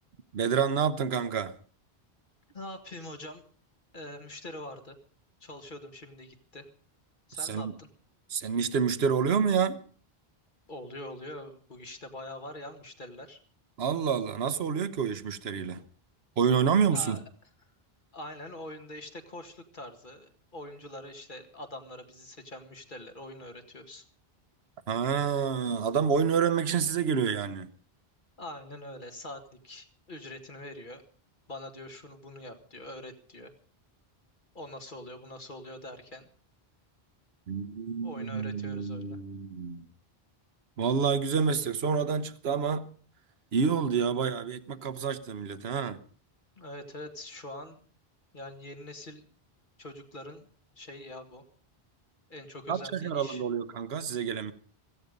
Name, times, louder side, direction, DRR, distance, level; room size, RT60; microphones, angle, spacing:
voice 1, 0.3-1.5 7.4-7.7 8.3-9.8 13.8-15.8 16.4-17.2 24.9-27.7 37.5-39.9 40.8-42.9 43.5-46.0 52.7-54.5, right 6 dB, 80° right, 13 dB, 1.2 m, -28 dB
voice 2, 2.5-3.4 3.9-5.0 5.4-6.7 7.3-7.9 10.7-13.4 16.9-17.2 18.1-24.0 28.4-31.0 31.5-33.5 34.5-36.3 38.0-39.2 46.6-47.8 48.3-49.3 49.8-50.5 50.8-51.4 52.3-53.4, left 1 dB, 55° left, 6 dB, 2.1 m, -44 dB
16.5 x 15.0 x 5.2 m, 0.43 s
omnidirectional pair, 1.0 m